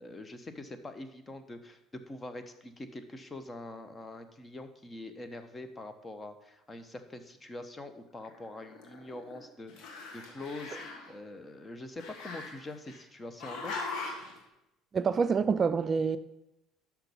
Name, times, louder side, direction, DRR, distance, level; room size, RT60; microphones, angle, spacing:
voice 1, 0.0-10.8 11.1-13.7, left 2 dB, 25° left, 0.9 m, -44 dB
Growling, 8.2-9.4 9.7-11.1 12.0-13.0 13.4-14.3, left 3 dB, 70° left, 1.6 m, -41 dB
voice 2, 14.9-16.2, right 5 dB, 35° right, 0.4 m, -26 dB
5.9 x 5.8 x 6.8 m
supercardioid pair, 80°, 0 cm